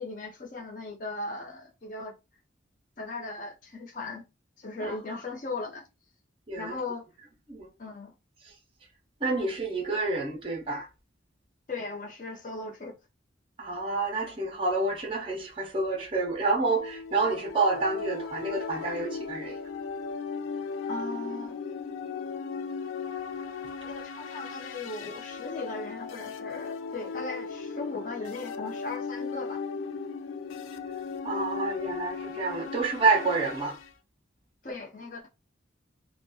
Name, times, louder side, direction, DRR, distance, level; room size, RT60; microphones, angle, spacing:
voice 1, 0.0-2.1 3.0-4.2 4.6-5.9 6.6-7.0 7.8-8.1 11.7-13.0 20.9-21.6 23.8-29.6 34.6-35.3, left 3 dB, 40° left, 0.6 m, -38 dB
voice 2, 4.8-5.2 6.5-6.8 7.5-7.7 9.2-10.9 13.6-19.6 31.2-33.8, right 3 dB, 25° right, 0.5 m, -28 dB
sound 1, 16.6-33.9, left 5 dB, 90° left, 0.3 m, -37 dB
2.8 x 2.1 x 2.2 m
head